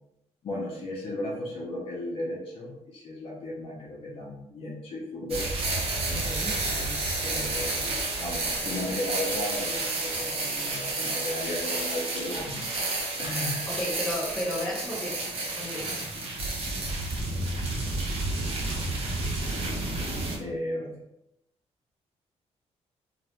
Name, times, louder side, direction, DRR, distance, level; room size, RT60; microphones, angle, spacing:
voice 1, 0.4-5.4 6.1-12.6 13.2-13.7 19.6-19.9 20.4-20.9, left 1 dB, 55° left, -3 dB, 0.5 m, -35 dB
sound 1, 5.3-20.4, right 2 dB, 55° right, 0.7 m, -30 dB
voice 2, 6.1-6.5 13.7-15.3 15.6-16.1, equal, 10° left, -6 dB, 0.8 m, -33 dB
2.5 x 2.1 x 3.0 m, 0.84 s
wide cardioid pair, 175°, 12 cm